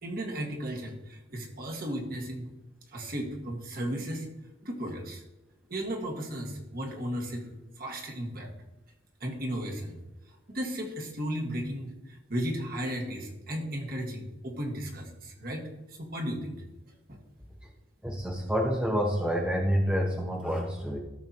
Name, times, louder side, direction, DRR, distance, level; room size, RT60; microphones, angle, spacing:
voice 1, 0.0-2.5 2.9-4.3 4.6-5.2 5.7-7.5 7.8-8.5 9.2-10.0 10.3-15.6 15.9-16.6 17.1-17.2, equal, 45° right, 1 dB, 1.6 m, -35 dB
voice 2, 18.0-21.0, equal, 5° right, 0 dB, 0.8 m, -28 dB
14.5 x 6.8 x 2.9 m, 1.0 s
head